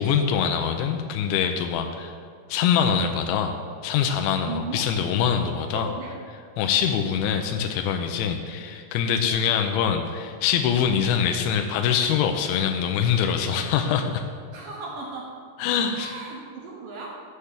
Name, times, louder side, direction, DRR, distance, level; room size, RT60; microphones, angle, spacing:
voice 1, 0.0-2.1 2.5-3.6 3.8-5.9 6.6-14.2 15.6-16.1, left 7 dB, 85° left, 4 dB, 2.9 m, -24 dB
voice 2, 4.4-4.9 5.6-6.2 9.3-9.5 14.5-15.4 16.0-17.1, right 3 dB, 75° right, -2 dB, 2.0 m, -36 dB
8.0 x 6.6 x 7.2 m, 2.1 s
omnidirectional pair, 5.3 m